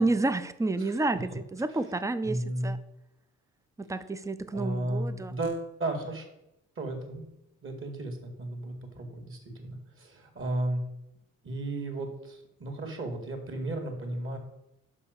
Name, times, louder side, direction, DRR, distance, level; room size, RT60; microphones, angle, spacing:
voice 1, 0.0-2.8 3.8-5.3, right 2 dB, 10° right, 13 dB, 0.5 m, -30 dB
voice 2, 2.2-2.7 4.5-6.2 6.8-7.3 7.6-10.8 11.4-14.4, right 1 dB, 45° right, 4 dB, 2.1 m, -34 dB
5.8 x 5.4 x 6.6 m, 0.86 s
cardioid pair, 90°, 30 cm